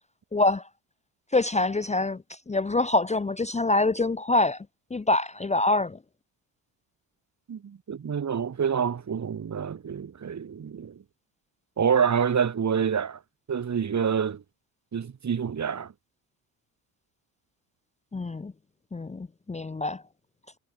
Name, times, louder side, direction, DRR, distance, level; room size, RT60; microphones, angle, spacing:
voice 1, 0.3-0.6 1.3-2.2 2.5-4.6 4.9-6.0 18.1-18.5 18.9-20.0, left 2 dB, 15° left, 0.9 m, -25 dB
voice 2, 7.5-11.0 11.8-13.2 13.5-14.4 14.9-15.9, right 7 dB, 40° right, 2.3 m, -27 dB
supercardioid pair, 65°, 43 cm